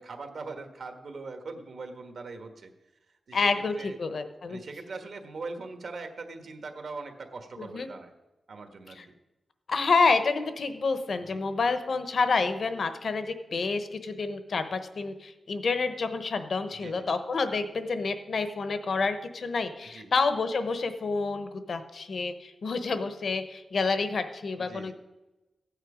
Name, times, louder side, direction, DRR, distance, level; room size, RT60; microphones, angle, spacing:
voice 1, 0.0-2.7 3.3-4.0 4.5-8.1 8.5-9.1 11.3-11.4 16.7-17.0 19.9-20.1 24.6-24.9, right 3 dB, 60° right, 5 dB, 1.4 m, -41 dB
voice 2, 3.3-4.6 7.6-7.9 9.0-9.1 9.7-24.9, left 4 dB, 55° left, 9 dB, 0.9 m, -28 dB
15.0 x 9.1 x 5.0 m, 1.0 s
wide cardioid pair, 160°, 0 cm